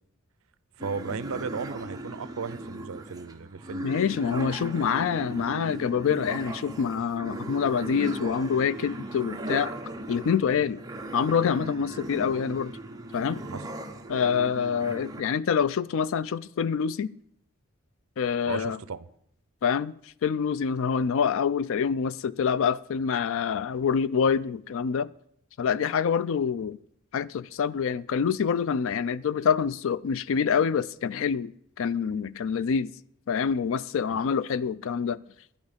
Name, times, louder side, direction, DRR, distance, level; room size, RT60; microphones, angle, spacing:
sound 1, 0.8-15.2, right 1 dB, 15° right, 0.8 m, -38 dB
voice 1, 0.8-3.9 13.5-13.6 18.4-19.1 34.1-34.2, right 5 dB, 70° right, 0.5 m, -35 dB
voice 2, 3.8-9.7 10.1-10.8 11.1-12.7 13.1-13.4 14.1-17.1 18.2-18.8 19.6-19.9 20.2-25.1 25.6-26.8 27.1-31.5 31.8-32.9 33.3-35.2, left 6 dB, 65° left, 0.4 m, -26 dB
10.5 x 10.5 x 5.1 m
head